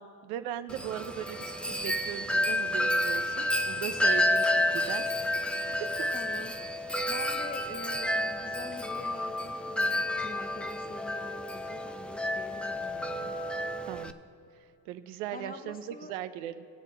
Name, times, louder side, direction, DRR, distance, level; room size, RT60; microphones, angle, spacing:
voice 1, 0.0-5.1 5.7-6.0 13.9-14.1 14.5-16.7, right 11 dB, 90° right, 10 dB, 0.6 m, -39 dB
Wind chime, 0.7-14.1, left 1 dB, 5° left, 0.3 m, -30 dB
voice 2, 6.1-13.4 15.1-16.1, left 2 dB, 20° left, 6 dB, 1.1 m, -45 dB
19.0 x 7.3 x 3.3 m, 2.5 s
supercardioid pair, 80°, 40 cm